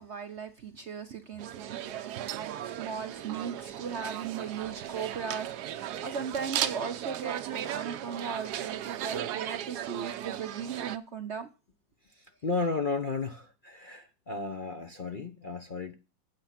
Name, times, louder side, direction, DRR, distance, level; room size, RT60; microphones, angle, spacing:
voice 1, 0.0-11.5, right 6 dB, 55° right, 0.8 m, -38 dB
sound 1, 1.4-11.0, right 11 dB, 70° right, 1.2 m, -36 dB
voice 2, 12.1-15.9, left 4 dB, 40° left, 0.8 m, -34 dB
9.1 x 7.3 x 5.8 m
omnidirectional pair, 1.9 m